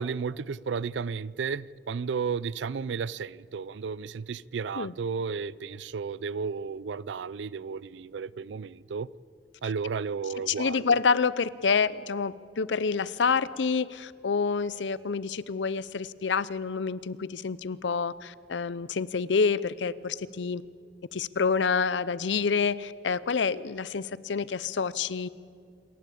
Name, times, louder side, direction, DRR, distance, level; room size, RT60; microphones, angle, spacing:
voice 1, 0.0-9.1 9.6-10.8, right 5 dB, 75° right, 0.4 m, -33 dB
voice 2, 10.5-20.6 21.1-25.3, left 5 dB, 80° left, 0.6 m, -28 dB
27.0 x 12.0 x 8.5 m
head